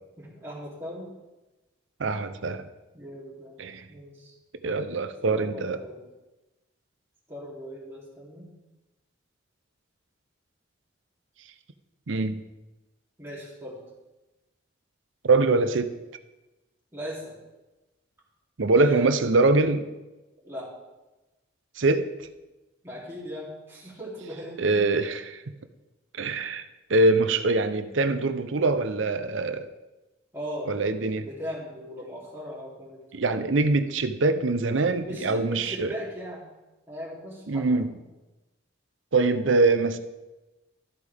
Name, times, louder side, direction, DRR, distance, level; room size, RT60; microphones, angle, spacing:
voice 1, 0.2-1.1 2.9-3.6 3.9-4.3 5.3-6.0 7.3-8.5 13.2-13.8 16.9-17.3 18.8-19.1 20.4-20.7 22.8-24.6 30.3-30.7 31.2-33.2 35.0-36.4 36.9-38.0, equal, 10° right, -7 dB, 3.1 m, -38 dB
voice 2, 2.0-2.7 3.6-3.8 4.6-5.8 12.1-12.4 15.2-15.9 18.6-19.9 21.8-22.1 24.6-25.4 26.2-26.6 26.9-29.7 30.7-31.3 33.1-35.9 37.5-37.9 39.1-40.0, right 3 dB, 75° right, 10 dB, 0.7 m, -23 dB
13.5 x 8.4 x 3.5 m, 1.1 s
head